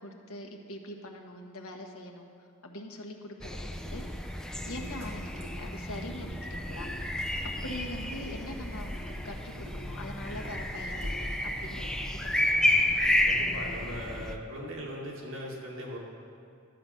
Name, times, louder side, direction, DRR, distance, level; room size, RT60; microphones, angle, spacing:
voice 1, 0.0-2.3 2.6-4.1 4.7-6.9 7.6-11.3 11.6-11.9 12.2-12.8, left 1 dB, 80° left, 1 dB, 1.2 m, -43 dB
sound 1, 3.4-14.4, left 1 dB, 5° left, 0.4 m, -31 dB
sound 2, 3.7-12.4, equal, 30° right, 1.8 m, -45 dB
voice 2, 13.3-16.0, equal, 65° right, -3 dB, 2.1 m, -39 dB
11.5 x 7.7 x 5.7 m, 2.4 s
head